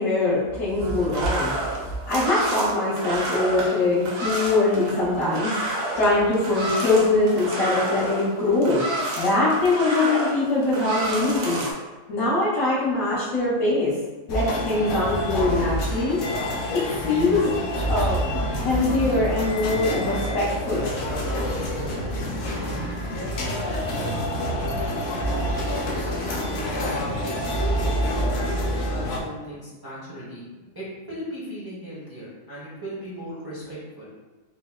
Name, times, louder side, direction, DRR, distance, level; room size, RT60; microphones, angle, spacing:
voice 1, 0.0-5.5 5.9-8.8 9.2-11.6 12.1-13.9 14.3-16.2 16.7-17.5 17.9-20.9, left 2 dB, 90° left, -10 dB, 1.3 m, -23 dB
sound 1, 0.8-11.7, right 1 dB, 60° right, 0.8 m, -30 dB
sound 2, 14.3-29.2, equal, 75° left, 0.9 m, -27 dB
voice 2, 26.5-27.3 27.7-34.1, equal, 30° right, -8 dB, 0.4 m, -38 dB
3.8 x 2.1 x 2.3 m, 1.2 s
omnidirectional pair, 1.4 m